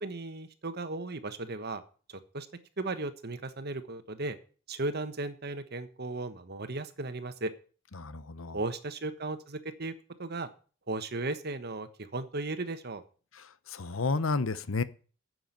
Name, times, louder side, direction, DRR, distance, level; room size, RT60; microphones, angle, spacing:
voice 1, 0.0-1.8 2.1-2.5 2.8-4.4 4.7-7.5 8.5-9.9 10.2-10.5 10.9-13.0, right 2 dB, 50° right, 1.3 m, -36 dB
voice 2, 8.0-8.6 13.7-14.8, left 3 dB, 75° left, 0.9 m, -31 dB
9.8 x 7.8 x 9.1 m
head